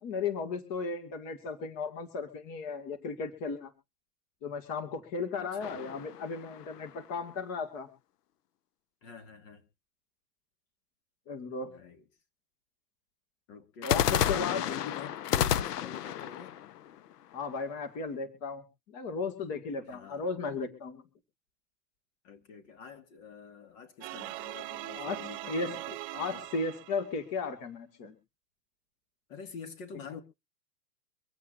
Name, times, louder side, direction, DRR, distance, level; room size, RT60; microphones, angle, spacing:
voice 1, 0.0-3.7 4.4-7.9 11.3-11.7 13.8-14.7 17.3-18.6 18.9-21.0 24.9-25.2 25.5-25.8 26.1-28.1, left 4 dB, 35° left, 2.5 m, -35 dB
voice 2, 5.3-5.8 9.0-9.6 11.6-12.0 13.5-16.6 19.8-20.4 22.2-26.0 26.3-26.4 29.3-30.2, left 6 dB, 50° left, 2.7 m, -46 dB
sound 1, 5.6-7.1 13.8-17.8, left 10 dB, 75° left, 0.9 m, -31 dB
sound 2, 24.0-27.3, right 19 dB, 35° right, 0.6 m, -41 dB
25.5 x 8.5 x 2.8 m
hypercardioid pair, 135°, 47 cm